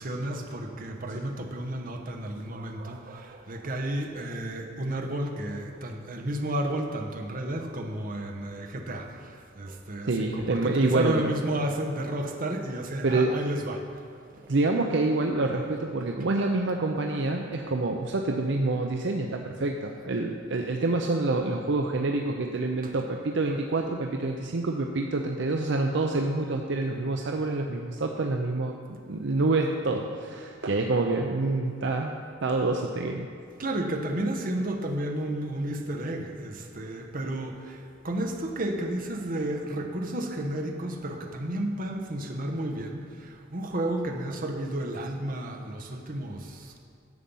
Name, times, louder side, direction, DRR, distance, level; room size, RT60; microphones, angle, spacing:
voice 1, 0.0-13.9 14.3-14.5 21.3-21.4 22.8-23.0 23.4-23.6 33.6-46.8, right 1 dB, 45° right, 2 dB, 1.1 m, -32 dB
voice 2, 10.0-11.3 13.0-13.4 14.5-33.3, right 2 dB, 65° right, 2 dB, 0.6 m, -27 dB
11.0 x 7.5 x 5.4 m, 2.3 s
head